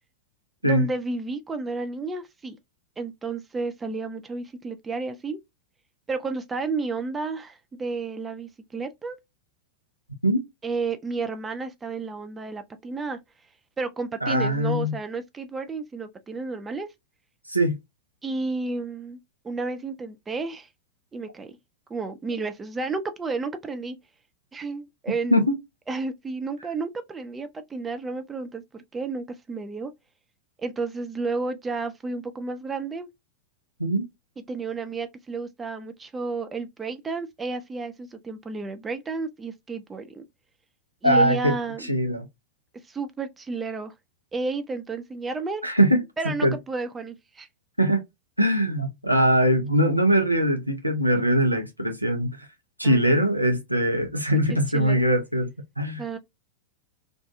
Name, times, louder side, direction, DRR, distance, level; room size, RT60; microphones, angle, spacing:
voice 1, 0.6-2.6 3.0-5.4 6.1-9.2 10.6-13.2 13.8-16.9 18.2-19.2 19.4-20.7 21.1-21.5 21.9-24.0 24.5-25.4 25.9-29.9 30.6-33.1 34.5-40.3 41.0-41.9 42.9-43.9 44.3-45.6 46.2-47.5 52.8-53.2 54.7-55.0 56.0-56.2, right 3 dB, 15° right, 0.3 m, -31 dB
voice 2, 14.2-14.9 17.5-17.8 25.3-25.5 33.8-34.1 41.0-41.5 41.8-42.3 45.6-46.5 47.8-48.0 48.4-52.4 52.8-55.5 55.8-56.0, equal, 85° right, 0.5 m, -22 dB
2.4 x 2.3 x 2.3 m
figure-of-eight pair, 90°, 0 cm